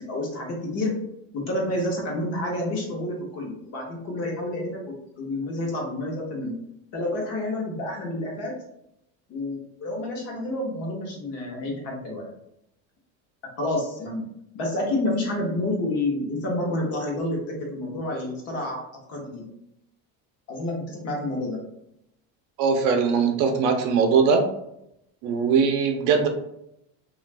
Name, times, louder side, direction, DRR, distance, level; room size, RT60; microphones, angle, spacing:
voice 1, 0.1-0.9 1.3-6.5 6.9-8.6 9.3-12.3 13.6-14.3 14.5-18.8 19.1-19.4 20.5-21.6, left 1 dB, 45° left, -1 dB, 0.9 m, -29 dB
voice 2, 22.6-24.5 25.2-26.3, right 5 dB, 60° right, 4 dB, 0.6 m, -21 dB
2.4 x 2.4 x 3.2 m, 0.78 s
cardioid pair, 165°, 35 cm